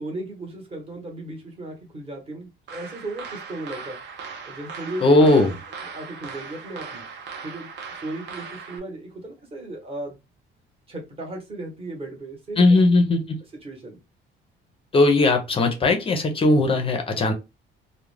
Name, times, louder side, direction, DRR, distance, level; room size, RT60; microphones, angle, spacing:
voice 1, 0.0-4.0 4.5-5.3 5.9-7.0 7.4-10.2 10.9-12.8 13.6-14.0, right 2 dB, 25° right, 0.9 m, -36 dB
sound 1, 2.7-8.8, right 5 dB, 55° right, 0.5 m, -38 dB
voice 2, 5.0-5.6 12.6-13.4 14.9-17.3, left 2 dB, 25° left, 0.5 m, -18 dB
2.3 x 2.1 x 3.1 m
cardioid pair, 165°, 21 cm